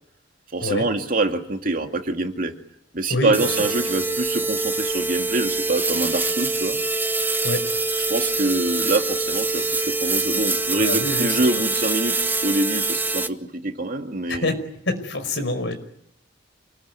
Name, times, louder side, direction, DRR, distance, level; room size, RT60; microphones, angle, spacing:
voice 1, 0.5-2.5 2.9-6.8 8.1-14.5, right 2 dB, 50° right, 5 dB, 2.4 m, -25 dB
voice 2, 3.1-3.7 7.4-7.6 10.8-11.5 14.3-14.6 14.9-15.8, left 1 dB, 70° left, 7 dB, 5.4 m, -26 dB
sound 1, 3.3-13.3, right 3 dB, 10° right, 1.0 m, -24 dB
28.5 x 20.5 x 9.7 m, 0.73 s
head